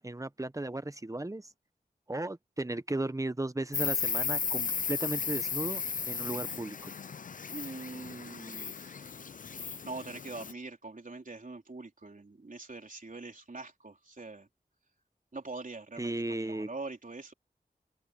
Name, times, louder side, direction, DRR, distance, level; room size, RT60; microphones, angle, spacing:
voice 1, 0.0-1.5 2.1-6.9 16.0-16.7, right 2 dB, 20° right, 0.9 m, -35 dB
Insect, 3.7-10.5, left 6 dB, 55° left, 0.4 m, -35 dB
voice 2, 7.5-9.1 9.5-14.5 15.3-17.3, right 3 dB, 55° right, 3.9 m, -44 dB
open air
cardioid pair, 45°, 16 cm